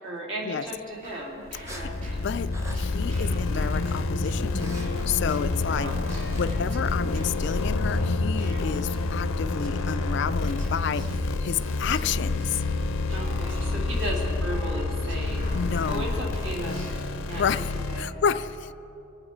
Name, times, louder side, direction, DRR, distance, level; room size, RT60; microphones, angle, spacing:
voice 1, 0.0-1.4 1.7-2.0 5.8-5.9 13.1-15.5 15.9-16.8 17.2-17.4 17.9-18.1, equal, 65° right, -2 dB, 2.8 m, -34 dB
sound 1, 0.7-6.5, right 1 dB, 15° right, 0.9 m, -48 dB
sound 2, 0.8-9.3 9.6-17.4, equal, 35° right, 4.0 m, -47 dB
sound 3, 1.5-18.0, left 3 dB, 90° left, 0.7 m, -28 dB
voice 2, 1.7-2.5 2.7-5.9 6.4-12.6 15.5-16.1 17.4-18.7, left 7 dB, 55° left, 13 dB, 0.3 m, -30 dB
23.5 x 8.9 x 4.4 m, 2.9 s
head